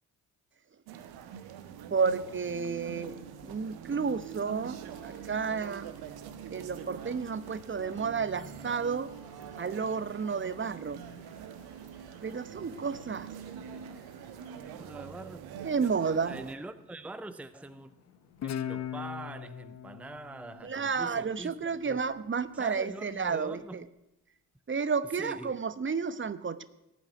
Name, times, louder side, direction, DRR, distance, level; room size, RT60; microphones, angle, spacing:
sound 1, 0.9-16.5, right 8 dB, 65° right, 1.3 m, -45 dB
voice 1, 1.9-4.8 5.0-5.9 6.5-9.1 9.6-11.0 12.2-13.3 15.6-16.4 20.6-23.8 24.7-26.6, right 5 dB, 30° right, 1.0 m, -31 dB
sound 2, 3.0-19.3, left 6 dB, 75° left, 1.9 m, -61 dB
voice 2, 14.8-16.0 16.2-17.9 18.4-21.6 21.8-22.1 22.5-23.9 25.2-25.5, right 2 dB, 5° right, 0.8 m, -43 dB
Guitar, 18.4-21.6, left 10 dB, 40° left, 0.9 m, -39 dB
18.0 x 9.1 x 8.0 m
figure-of-eight pair, 40°, 41 cm